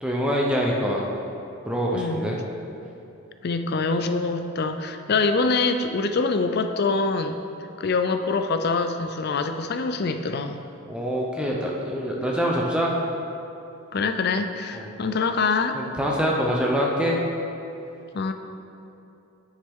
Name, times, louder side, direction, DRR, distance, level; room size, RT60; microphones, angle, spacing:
voice 1, 0.0-1.1 1.7-2.4 10.9-13.0 14.7-14.9 15.7-17.2, equal, 5° right, -3 dB, 0.8 m, -25 dB
voice 2, 1.9-2.3 3.4-7.4 7.8-10.6 13.9-15.8 18.1-18.3, left 4 dB, 45° left, 8 dB, 0.4 m, -25 dB
9.4 x 7.2 x 3.7 m, 2.8 s
head